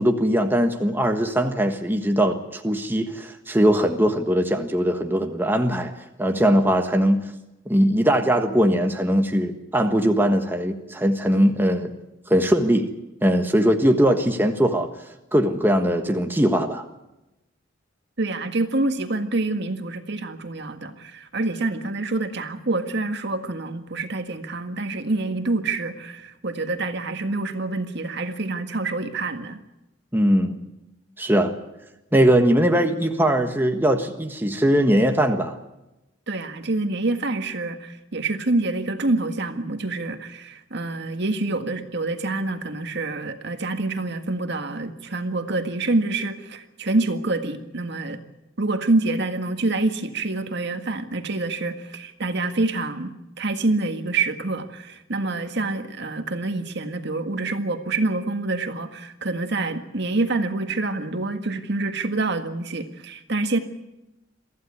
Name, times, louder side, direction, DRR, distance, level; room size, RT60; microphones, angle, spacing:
voice 1, 0.0-5.9 6.2-7.2 7.7-11.9 12.3-12.9 13.2-14.9 15.3-16.9 30.1-30.6 31.2-31.5 32.1-35.6, equal, 10° right, 4 dB, 1.4 m, -20 dB
voice 2, 18.2-29.6 36.3-48.2 48.6-63.6, right 2 dB, 60° right, 7 dB, 1.8 m, -26 dB
24.0 x 15.0 x 9.7 m, 0.95 s
head